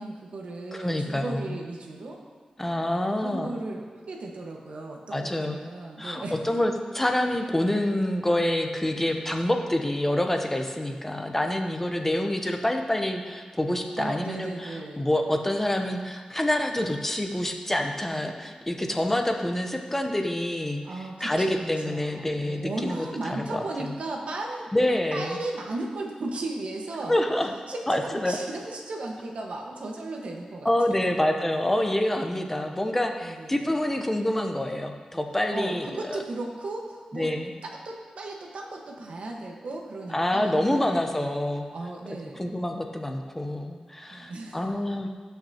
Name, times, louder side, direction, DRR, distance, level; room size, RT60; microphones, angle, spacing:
voice 1, 0.0-2.2 2.8-6.3 14.0-15.1 20.8-24.7 25.1-27.1 27.7-30.7 31.0-31.1 33.2-33.7 35.5-37.3 37.6-41.4 41.7-42.8 44.1-44.6, right 2 dB, 80° right, 0 dB, 1.4 m, -36 dB
voice 2, 0.7-1.5 2.6-3.5 5.1-5.6 6.0-20.8 21.2-23.9 24.7-25.4 27.1-27.5 27.9-28.4 30.6-36.2 37.1-37.5 40.1-41.6 42.4-45.1, left 1 dB, 15° left, 4 dB, 0.8 m, -27 dB
16.5 x 5.8 x 2.9 m, 1.5 s
wide cardioid pair, 125°, 2 cm